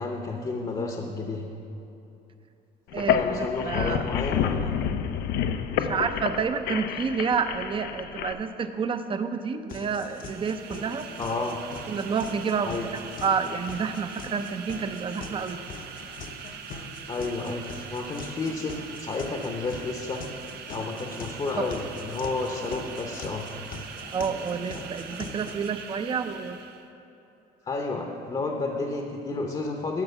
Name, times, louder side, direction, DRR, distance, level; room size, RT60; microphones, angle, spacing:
voice 1, 0.0-1.4 3.0-4.7 11.2-11.6 12.6-12.9 17.1-17.6 17.9-20.2 20.7-23.5 27.6-30.0, left 3 dB, 30° left, 2 dB, 0.8 m, -31 dB
sound 1, 2.9-8.3, left 8 dB, 75° left, 0.5 m, -28 dB
voice 2, 2.9-4.0 5.8-11.1 11.9-15.6 21.6-21.7 24.1-26.6, right 6 dB, 30° right, 9 dB, 0.5 m, -29 dB
sound 2, 9.7-25.7, left 3 dB, 55° left, 0.9 m, -42 dB
sound 3, 10.0-26.9, right 7 dB, 70° right, 0.7 m, -42 dB
12.0 x 4.5 x 6.9 m, 2.9 s
cardioid pair, 110°, 17 cm